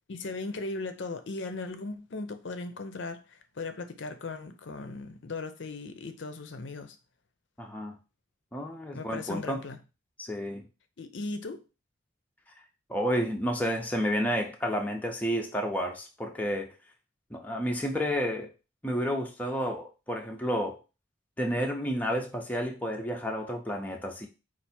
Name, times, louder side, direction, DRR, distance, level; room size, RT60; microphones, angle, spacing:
voice 1, 0.1-7.0 8.9-9.8 11.0-11.6, left 3 dB, 65° left, 0.6 m, -37 dB
voice 2, 7.6-8.0 8.5-9.6 10.2-10.6 12.9-16.7 17.3-18.5 18.8-20.8 21.4-24.3, equal, 10° left, 0.5 m, -31 dB
4.6 x 2.5 x 4.2 m
head